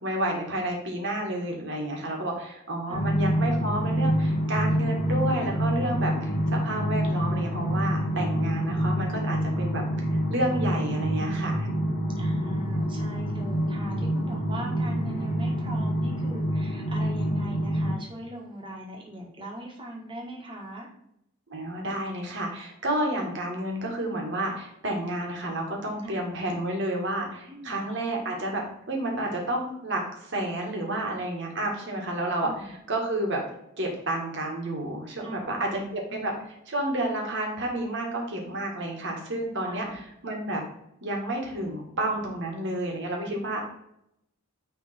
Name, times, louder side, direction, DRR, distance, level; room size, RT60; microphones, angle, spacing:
voice 1, 0.0-6.1 6.5-11.7 21.5-33.4 33.8-36.3 36.7-40.6 41.0-43.6, right 1 dB, 55° right, 0 dB, 1.9 m, -30 dB
sound 1, 2.9-17.9, equal, 55° left, 3.0 m, -27 dB
voice 2, 5.9-6.5 12.2-20.9 26.0-26.3 27.5-27.9 32.4-32.7 35.2-36.3 39.6-40.0 43.2-43.3, right 1 dB, 20° right, -1 dB, 1.6 m, -40 dB
9.5 x 3.6 x 4.4 m, 0.77 s
head